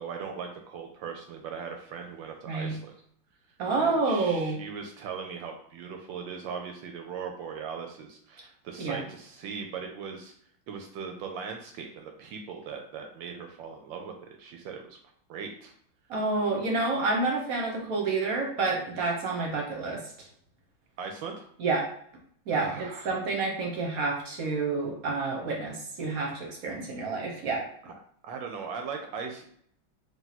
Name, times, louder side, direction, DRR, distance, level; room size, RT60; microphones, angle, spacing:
voice 1, 0.0-2.9 3.7-10.3 10.7-15.0 15.3-15.7 21.0-21.5 22.6-23.2 28.2-29.5, right 6 dB, 75° right, 3 dB, 1.2 m, -39 dB
voice 2, 3.6-4.6 8.8-9.0 16.1-20.0 21.6-21.9 22.5-27.7, right 3 dB, 60° right, 0 dB, 1.0 m, -29 dB
3.6 x 2.5 x 4.0 m, 0.64 s
omnidirectional pair, 2.2 m